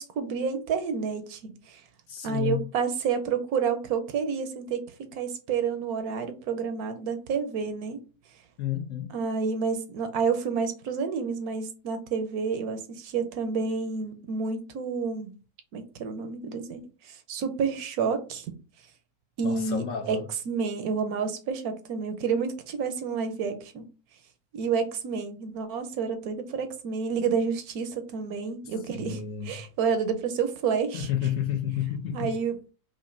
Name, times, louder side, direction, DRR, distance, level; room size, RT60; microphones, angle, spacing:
voice 1, 0.0-1.8 2.2-4.8 5.1-8.0 9.1-15.3 15.7-18.5 19.4-20.2 20.5-23.9 24.5-31.1 32.1-32.5, right 5 dB, 75° right, 1.1 m, -29 dB
voice 2, 2.1-2.7 8.6-9.1 19.4-20.3 28.9-29.6 30.9-32.3, left 10 dB, 65° left, 1.0 m, -31 dB
5.2 x 2.5 x 2.5 m
omnidirectional pair, 1.6 m